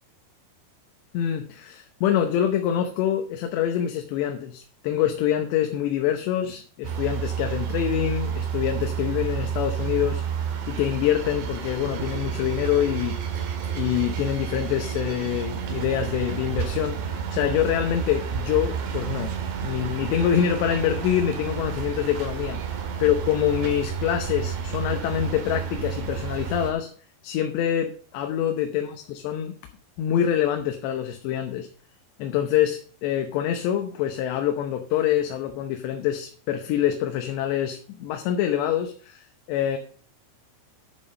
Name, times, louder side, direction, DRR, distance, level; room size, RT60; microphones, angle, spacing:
voice 1, 1.1-10.2 10.7-13.2 13.8-19.3 19.6-26.9 27.2-29.5 30.0-31.7 32.2-39.8, left 10 dB, 85° left, 5 dB, 3.2 m, -25 dB
sound 1, 6.8-26.7, right 7 dB, 85° right, 4.0 m, -30 dB
10.5 x 7.1 x 5.3 m, 0.44 s
omnidirectional pair, 4.9 m